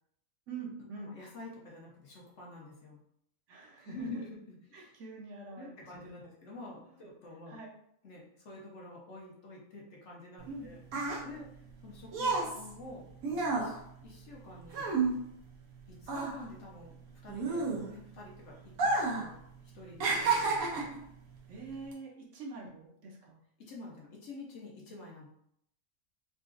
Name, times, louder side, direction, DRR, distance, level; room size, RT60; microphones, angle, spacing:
voice 1, 0.5-1.1 3.5-4.1 4.7-5.7 6.2-6.3 7.5-7.7 10.5-10.7 21.5-23.4, right 3 dB, 65° right, -1 dB, 1.0 m, -44 dB
voice 2, 1.1-3.0 3.8-4.9 5.5-7.6 8.0-10.8 11.2-11.5 11.8-13.1 13.4-14.9 15.9-17.0 17.2-19.4 19.7-20.9 23.6-25.3, left 2 dB, 60° left, -3 dB, 1.1 m, -48 dB
sound 1, 10.4-15.8 16.0-18.2 18.7-19.3 19.6-21.0 21.7-21.9, right 3 dB, 90° right, 1.2 m, -31 dB
3.8 x 2.4 x 2.4 m, 0.72 s
omnidirectional pair, 1.4 m